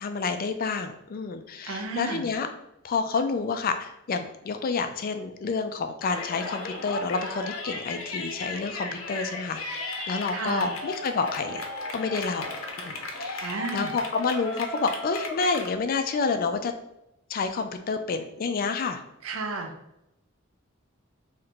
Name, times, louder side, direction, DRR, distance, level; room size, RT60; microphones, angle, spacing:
voice 1, 0.0-2.5 2.8-9.8 10.1-11.6 11.9-12.6 12.8-16.7 17.3-19.0, left 4 dB, 45° left, 8 dB, 0.4 m, -29 dB
voice 2, 1.7-2.3 10.3-10.7 13.4-13.9 19.2-19.7, right 3 dB, 85° right, 4 dB, 0.6 m, -32 dB
Yell, 6.0-15.7, left 2 dB, 85° left, 0.6 m, -35 dB
2.9 x 2.6 x 4.3 m, 0.84 s
head